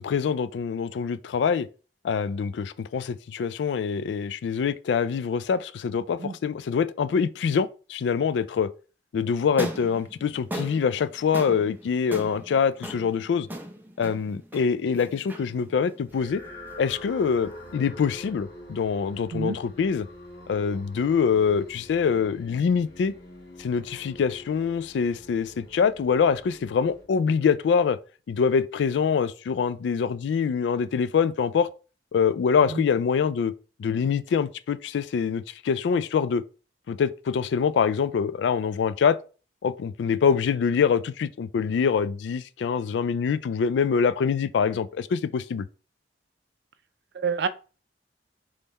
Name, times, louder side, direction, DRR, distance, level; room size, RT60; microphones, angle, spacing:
voice 1, 0.0-1.7 2.0-8.7 9.1-13.5 14.0-16.4 16.8-20.1 20.5-23.1 23.6-28.0 28.3-31.7 32.1-33.5 33.8-36.4 36.9-39.2 39.6-45.6, left 6 dB, 75° left, 0.3 m, -25 dB
sound 1, 9.4-17.7, equal, 10° right, 0.6 m, -39 dB
sound 2, 16.1-27.5, left 1 dB, 55° left, 1.8 m, -45 dB
voice 2, 47.1-47.5, right 5 dB, 65° right, 0.4 m, -27 dB
3.6 x 3.3 x 4.0 m
head